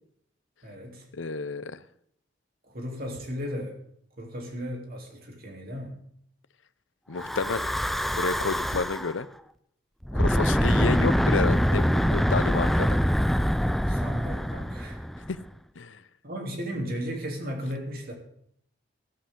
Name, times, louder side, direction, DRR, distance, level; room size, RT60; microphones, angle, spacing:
voice 1, 0.6-1.1 2.7-3.8 4.1-5.9 13.9-15.0 16.2-18.1, equal, 55° right, 1 dB, 3.3 m, -35 dB
voice 2, 1.1-1.8 7.1-7.7 8.2-9.3 10.1-13.0 15.3-15.4 15.8-16.0, left 4 dB, 85° left, 16 dB, 0.7 m, -30 dB
Breathing / Wind, 7.2-9.1 10.0-15.4, equal, ahead, 0.4 m, -24 dB
15.5 x 13.0 x 3.8 m, 0.69 s
head